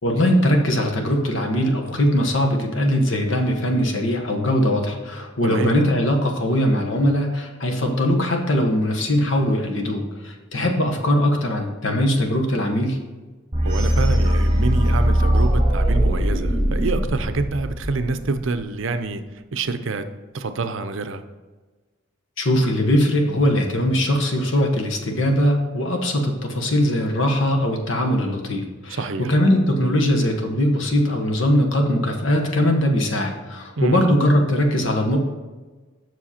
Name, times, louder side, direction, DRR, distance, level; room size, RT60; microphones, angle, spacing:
voice 1, 0.0-13.0 22.4-35.2, equal, 65° left, 2 dB, 1.2 m, -21 dB
voice 2, 5.4-5.8 13.6-19.2 19.5-20.0 20.3-21.2 28.9-29.3 33.8-34.0, right 3 dB, 65° right, 9 dB, 0.6 m, -26 dB
sound 1, 13.5-18.4, equal, 25° right, 2.2 m, -20 dB
7.4 x 6.3 x 4.3 m, 1.3 s
head